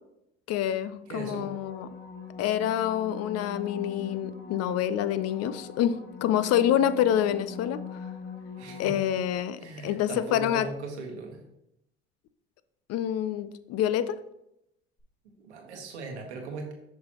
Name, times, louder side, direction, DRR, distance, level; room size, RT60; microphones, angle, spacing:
voice 1, 0.5-1.9 2.4-7.8 8.8-10.7 12.9-14.2, left 10 dB, 50° left, 14 dB, 0.5 m, -27 dB
sound 1, 1.0-9.7 15.0-15.1, left 5 dB, 30° left, 1.5 m, -42 dB
voice 2, 1.1-1.5 8.6-9.0 9.6-11.4 15.2-16.7, right 3 dB, 90° right, 3 dB, 1.3 m, -38 dB
6.4 x 5.8 x 3.0 m, 0.83 s
hypercardioid pair, 70°, 33 cm